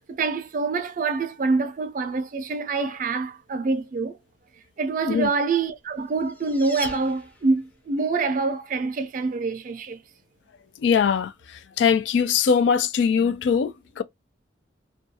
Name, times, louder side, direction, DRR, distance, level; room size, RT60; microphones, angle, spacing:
voice 1, 0.1-4.2 4.8-10.0, right 4 dB, 45° right, 0.4 m, -26 dB
sound 1, 5.7-7.8, right 1 dB, 10° left, 0.5 m, -39 dB
voice 2, 10.8-11.3 11.8-14.0, left 6 dB, 75° left, 0.3 m, -21 dB
2.3 x 2.3 x 2.7 m
head